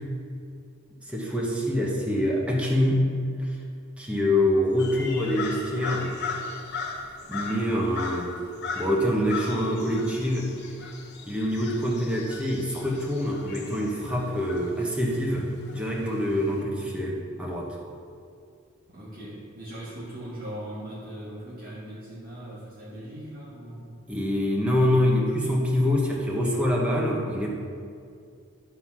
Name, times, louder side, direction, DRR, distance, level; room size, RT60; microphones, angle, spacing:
voice 1, 1.1-3.1 3.4-3.6 4.0-6.1 7.3-8.3 8.7-10.5 11.3-17.8 24.1-27.5, left 1 dB, 5° right, -3 dB, 1.0 m, -25 dB
sound 1, 4.8-16.6, left 4 dB, 50° left, 0.9 m, -38 dB
voice 2, 18.9-23.9, right 1 dB, 40° right, -8 dB, 1.8 m, -39 dB
11.5 x 3.9 x 6.0 m, 2.3 s
head